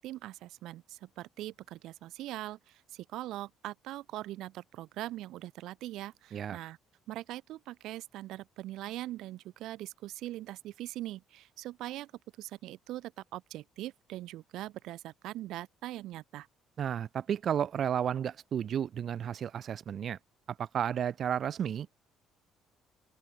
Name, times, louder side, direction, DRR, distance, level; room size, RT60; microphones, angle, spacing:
voice 1, 0.0-6.8 7.1-12.1 12.4-16.5, right 15 dB, 75° right, 1.0 m, -41 dB
voice 2, 16.8-20.2 20.6-21.9, right 9 dB, 50° right, 0.6 m, -32 dB
open air
cardioid pair, 115°, 0 cm